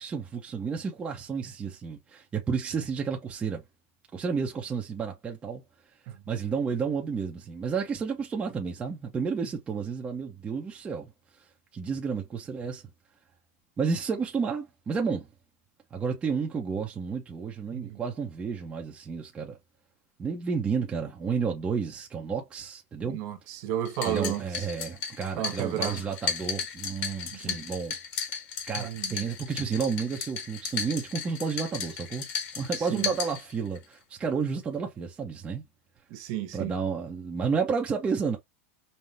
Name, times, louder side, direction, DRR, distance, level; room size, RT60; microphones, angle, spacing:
voice 1, 0.0-3.6 4.1-5.6 6.3-11.1 11.7-12.8 13.8-15.3 15.9-19.6 20.2-23.2 24.0-27.9 28.7-32.3 32.6-35.6 36.5-38.4, right 5 dB, 15° right, 0.7 m, -31 dB
voice 2, 23.1-24.6 25.4-26.0 27.3-27.6 28.8-29.3 32.8-33.1 36.1-36.7, right 11 dB, 40° right, 1.0 m, -33 dB
sound 1, 23.9-33.8, left 6 dB, 30° left, 1.3 m, -35 dB
5.5 x 2.0 x 3.3 m
supercardioid pair, 165°, 8 cm